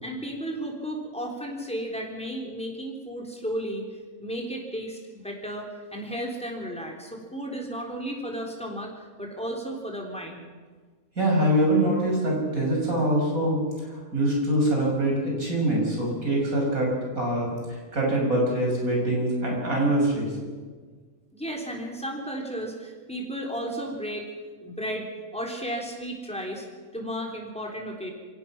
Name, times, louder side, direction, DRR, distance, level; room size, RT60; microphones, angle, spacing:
voice 1, 0.0-3.9 4.2-8.9 9.2-10.4 21.3-24.3 24.6-26.7 26.9-28.1, equal, 5° left, 0 dB, 3.7 m, -34 dB
voice 2, 11.2-13.6 13.9-20.3, right 1 dB, 75° right, -2 dB, 6.7 m, -24 dB
27.0 x 16.5 x 6.0 m, 1.5 s
omnidirectional pair, 1.5 m